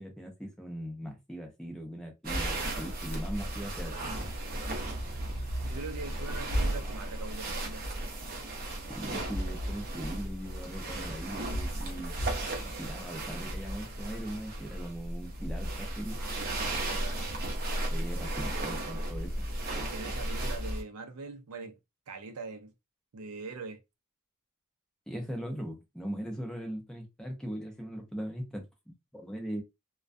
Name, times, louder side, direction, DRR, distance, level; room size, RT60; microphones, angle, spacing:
voice 1, 0.0-3.9 8.9-12.3 12.8-16.2 17.9-19.5 25.1-29.6, equal, 5° left, 0.6 m, -40 dB
sound 1, 2.2-20.8, right 1 dB, 40° right, 0.6 m, -34 dB
voice 2, 5.6-7.8 16.2-17.2 19.8-21.8 22.1-22.7 23.1-23.8, right 3 dB, 85° right, 0.5 m, -42 dB
2.2 x 2.2 x 2.5 m
head